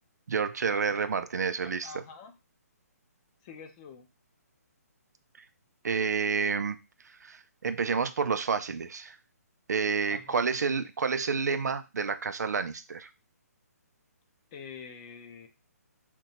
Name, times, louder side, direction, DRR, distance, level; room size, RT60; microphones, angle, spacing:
voice 1, 0.3-1.9 5.8-6.8 7.2-9.2 9.7-13.1, right 5 dB, 80° right, 11 dB, 0.4 m, -29 dB
voice 2, 1.6-2.3 3.4-4.1 10.1-10.4 14.5-15.5, left 6 dB, 25° left, 6 dB, 0.5 m, -46 dB
2.7 x 2.2 x 4.0 m, 0.28 s
hypercardioid pair, 150°, 9 cm